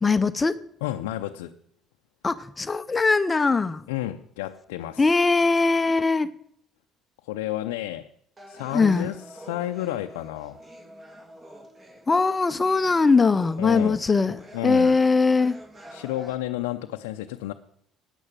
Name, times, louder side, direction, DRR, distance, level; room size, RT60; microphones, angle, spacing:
voice 1, 0.0-0.6 2.2-3.9 5.0-6.3 8.7-9.1 12.1-15.6, left 4 dB, 25° left, 0.7 m, -21 dB
voice 2, 0.8-1.6 3.9-5.1 7.2-8.1 8.5-10.6 13.6-14.0 14.5-14.9 15.9-17.5, left 14 dB, 85° left, 0.6 m, -31 dB
sound 1, 8.4-16.4, right 1 dB, 25° right, 2.9 m, -47 dB
12.0 x 9.2 x 7.3 m
hypercardioid pair, 70°, 0 cm